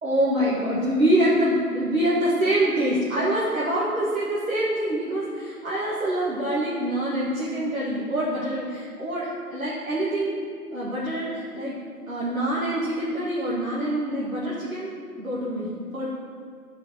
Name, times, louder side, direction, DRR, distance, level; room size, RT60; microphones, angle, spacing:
voice 1, 0.0-10.4 10.7-11.8 12.1-16.1, right 1 dB, 55° right, -8 dB, 1.9 m, -25 dB
11.5 x 5.3 x 5.6 m, 2.1 s
figure-of-eight pair, 160°, 47 cm